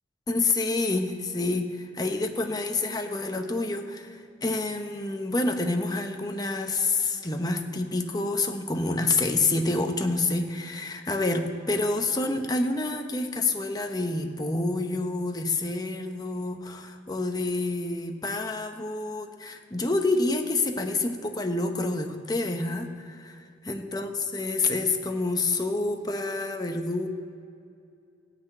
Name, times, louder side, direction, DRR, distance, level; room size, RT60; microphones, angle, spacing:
voice 1, 0.3-27.1, left 2 dB, 20° left, 5 dB, 0.9 m, -28 dB
14.5 x 6.0 x 8.8 m, 2.4 s
head